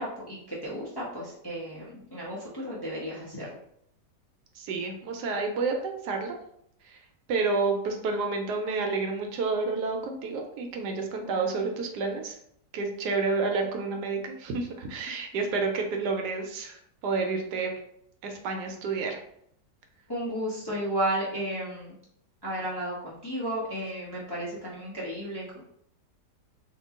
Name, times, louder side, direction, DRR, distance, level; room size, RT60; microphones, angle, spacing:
voice 1, 0.0-3.5 20.1-21.9 22.4-25.6, right 1 dB, 25° left, -7 dB, 0.6 m, -33 dB
voice 2, 4.6-6.4 6.9-7.0 7.3-12.3 12.7-17.7 18.2-19.2, right 4 dB, 75° right, 3 dB, 1.2 m, -30 dB
2.9 x 2.6 x 3.6 m, 0.71 s
omnidirectional pair, 1.8 m